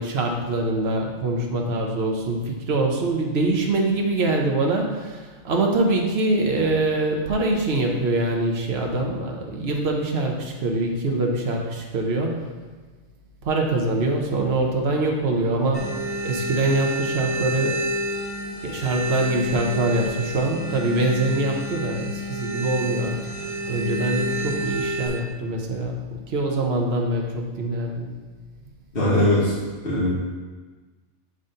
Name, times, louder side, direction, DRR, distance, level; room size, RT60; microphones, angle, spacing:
voice 1, 0.0-12.4 13.4-15.9 16.2-17.8 18.6-23.2 23.7-28.1, right 2 dB, 55° right, 1 dB, 1.1 m, -24 dB
sound 1, 15.7-25.1, right 1 dB, 75° left, 2.4 m, -29 dB
voice 2, 28.9-29.5 29.8-30.1, left 1 dB, 45° left, -10 dB, 2.2 m, -20 dB
9.0 x 4.0 x 3.8 m, 1.4 s
omnidirectional pair, 1.4 m